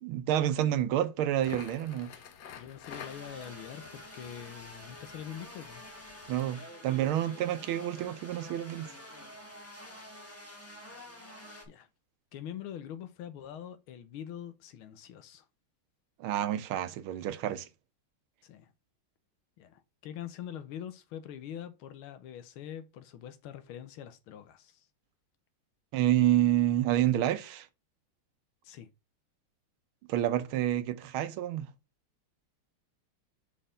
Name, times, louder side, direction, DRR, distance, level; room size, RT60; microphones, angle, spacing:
voice 1, 0.0-2.1 6.3-8.9 16.2-17.7 25.9-27.7 30.1-31.7, right 12 dB, 80° right, 1.5 m, -28 dB
Crackle, 1.3-6.5, left 8 dB, 60° left, 1.2 m, -49 dB
voice 2, 2.6-5.8 11.7-11.9 12.3-15.4 18.4-18.7 19.6-24.9 28.6-28.9, left 10 dB, 80° left, 1.6 m, -44 dB
sound 1, 2.9-11.6, left 1 dB, 10° left, 1.2 m, -48 dB
5.6 x 4.4 x 5.0 m
omnidirectional pair, 2.3 m